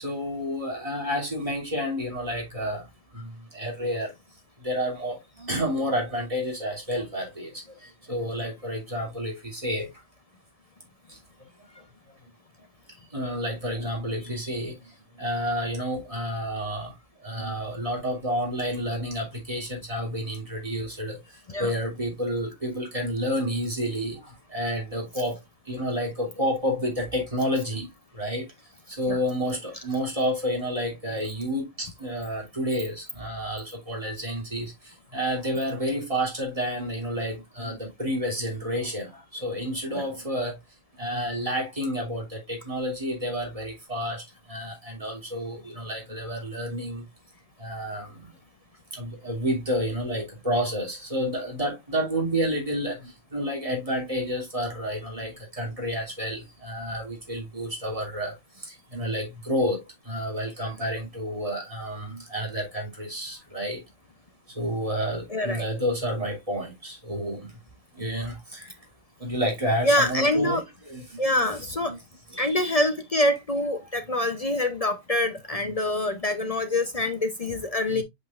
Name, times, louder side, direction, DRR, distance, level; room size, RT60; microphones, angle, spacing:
voice 1, 0.0-2.8 3.1-4.1 4.6-7.6 8.1-9.9 13.1-14.7 15.2-16.9 17.2-21.2 21.6-25.4 25.7-27.9 28.1-28.4 28.9-34.7 35.1-40.6 41.0-44.2 44.5-47.0 47.6-48.1 48.9-58.3 58.6-59.8 60.0-63.8 64.5-67.5 67.9-68.7 69.2-70.6 70.8-71.5 71.8-72.0 75.6-75.7 77.9-78.0, equal, 25° right, 3.0 m, -30 dB
voice 2, 65.3-65.6 69.8-70.6 71.2-72.0 72.3-78.0, left 1 dB, 35° left, 0.6 m, -25 dB
8.2 x 5.5 x 2.4 m
omnidirectional pair, 1.5 m